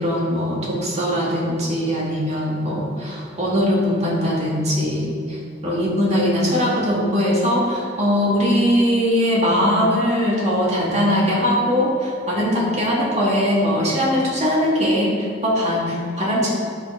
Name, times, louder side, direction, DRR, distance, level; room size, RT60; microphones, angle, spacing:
voice 1, 0.0-16.5, equal, 35° right, -4 dB, 2.2 m, -20 dB
9.6 x 6.5 x 5.0 m, 2.3 s
head